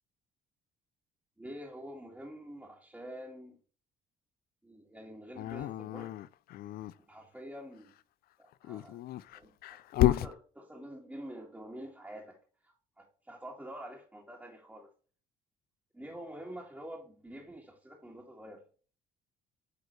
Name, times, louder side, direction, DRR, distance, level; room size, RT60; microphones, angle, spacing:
voice 1, 1.4-3.6 4.6-6.1 7.1-7.9 8.4-9.0 9.3-12.4 12.6-14.9 15.9-18.6, equal, 5° right, 1.9 m, -47 dB
Dog, 5.4-6.9 8.5-10.3, left 14 dB, 65° left, 0.4 m, -31 dB
9.0 x 4.3 x 3.1 m
cardioid pair, 110°, 17 cm